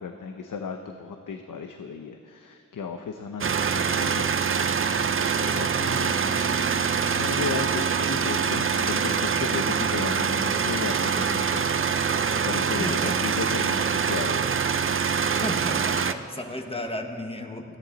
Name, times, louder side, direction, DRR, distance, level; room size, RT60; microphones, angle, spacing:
voice 1, 0.0-4.3 5.4-6.2 7.1-11.7 12.4-14.5, left 5 dB, 90° left, 6 dB, 0.7 m, -34 dB
sound 1, 3.4-16.1, right 6 dB, 45° right, 0.5 m, -25 dB
Bass guitar, 5.9-13.9, right 2 dB, 35° left, 2.6 m, -44 dB
voice 2, 12.8-13.1 15.4-17.6, left 1 dB, 20° left, 4 dB, 1.3 m, -33 dB
17.5 x 14.0 x 4.0 m, 2.4 s
wide cardioid pair, 75°, 31 cm